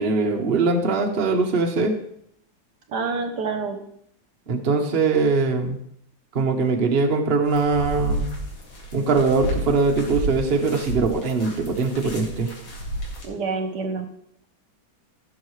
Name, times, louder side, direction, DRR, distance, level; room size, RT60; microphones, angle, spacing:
voice 1, 0.0-1.9 4.5-5.8 6.3-8.3 8.9-12.5, right 4 dB, 40° right, 2 dB, 0.9 m, -21 dB
voice 2, 2.9-3.8 13.2-14.1, right 4 dB, 60° right, 6 dB, 1.4 m, -27 dB
sound 1, 7.4-13.2, right 1 dB, 75° left, 2.7 m, -31 dB
15.5 x 6.4 x 3.2 m, 0.72 s
omnidirectional pair, 2.1 m